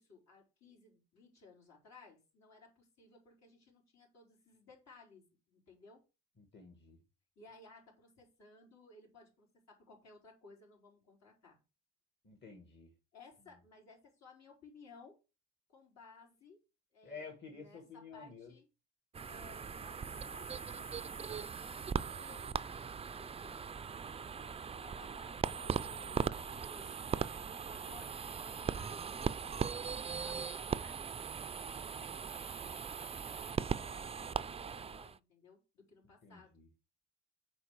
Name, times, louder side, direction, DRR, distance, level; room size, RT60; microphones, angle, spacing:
voice 1, 0.0-6.0 7.4-11.6 13.1-15.2 15.7-16.6 16.9-18.7 19.3-23.6 24.3-25.4 25.8-31.1 31.6-36.7, left 3 dB, 60° left, 4.6 m, -60 dB
voice 2, 6.4-7.0 12.2-12.9 17.0-18.5 36.2-36.7, left 5 dB, 35° left, 2.0 m, -51 dB
sound 1, 19.1-35.2, right 6 dB, 20° right, 0.3 m, -39 dB
7.0 x 4.7 x 6.6 m
cardioid pair, 90°, 30 cm